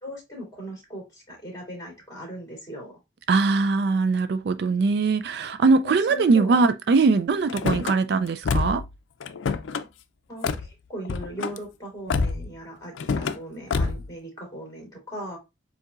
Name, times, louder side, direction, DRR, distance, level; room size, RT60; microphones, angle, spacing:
voice 1, 0.0-2.9 5.8-6.6 7.7-7.9 10.3-15.4, equal, 20° left, 2.5 m, -38 dB
voice 2, 3.3-8.8, right 4 dB, 55° right, 0.3 m, -21 dB
Car / Slam, 7.5-8.0 8.4-8.9 9.2-9.8 10.4-10.7 11.1-11.6 12.1-12.5 13.0-13.4 13.7-14.1, left 4 dB, 85° left, 0.4 m, -26 dB
7.2 x 2.8 x 2.4 m
head